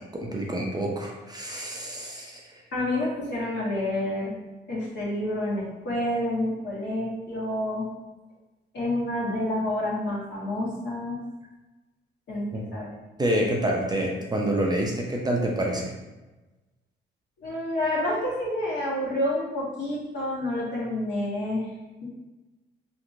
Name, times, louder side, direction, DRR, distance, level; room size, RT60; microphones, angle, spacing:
voice 1, 0.1-2.4 12.5-12.6 13.2-15.9, right 1 dB, 20° right, -1 dB, 0.5 m, -27 dB
voice 2, 2.7-4.3 4.7-7.9 8.7-11.2 12.3-12.9 17.4-21.7 22.0-22.1, left 1 dB, 60° left, -6 dB, 1.2 m, -28 dB
2.9 x 2.5 x 2.5 m, 1.1 s
cardioid pair, 90°, 20 cm